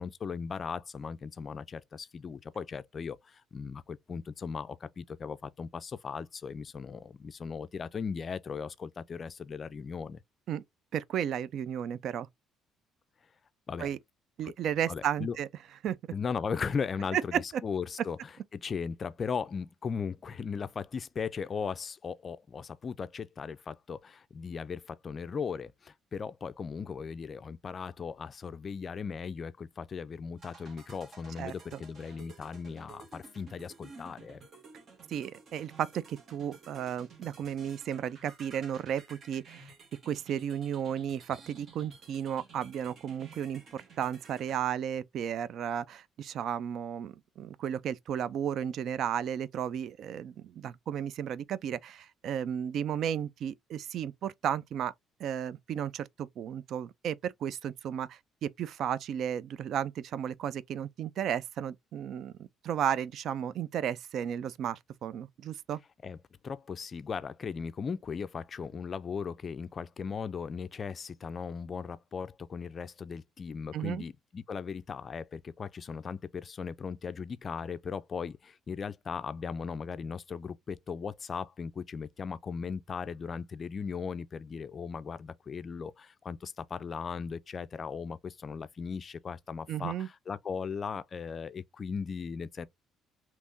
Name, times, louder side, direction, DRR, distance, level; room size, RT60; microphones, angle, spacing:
voice 1, 0.0-10.2 13.7-13.9 14.4-14.5 14.9-15.4 16.1-18.2 18.5-34.4 66.0-66.2 66.4-92.7, left 6 dB, 40° left, 0.4 m, -37 dB
voice 2, 10.9-12.3 13.8-14.0 14.4-15.5 15.8-16.0 17.1-17.6 31.4-31.8 35.1-39.7 40.1-54.9 55.2-65.8 73.7-74.1 89.7-90.1, right 9 dB, 65° right, 0.3 m, -34 dB
sound 1, 30.4-44.6, right 4 dB, 45° right, 1.2 m, -54 dB
3.5 x 2.9 x 2.5 m
cardioid pair, 110°, 0 cm